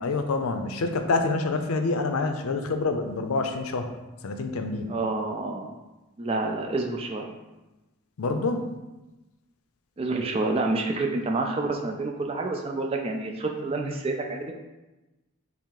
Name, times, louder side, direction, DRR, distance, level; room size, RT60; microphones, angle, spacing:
voice 1, 0.0-3.9 4.2-4.9 8.2-8.7, left 3 dB, 80° left, 6 dB, 0.5 m, -27 dB
voice 2, 4.9-5.7 6.2-7.3 10.0-14.5, right 2 dB, 25° right, 2 dB, 0.3 m, -28 dB
5.6 x 2.0 x 4.6 m, 1.1 s
head